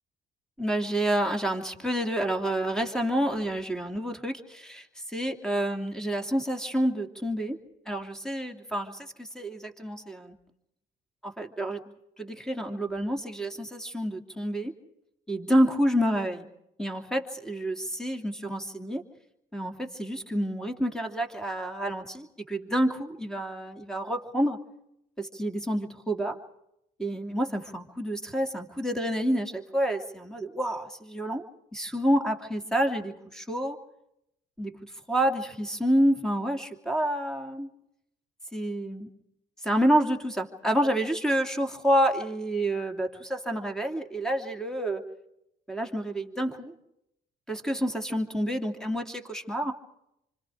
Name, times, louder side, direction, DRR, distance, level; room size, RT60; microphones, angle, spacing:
voice 1, 0.6-7.6 7.9-10.4 11.2-11.8 12.2-14.7 15.3-16.5 16.8-19.0 19.5-24.6 25.2-26.4 27.0-31.4 31.7-33.8 34.6-37.7 38.5-39.1 39.6-45.0 45.7-46.7 47.5-49.7, right 1 dB, 5° left, 4 dB, 2.8 m, -28 dB
28.0 x 25.5 x 5.0 m, 0.81 s
cardioid pair, 90°, 20 cm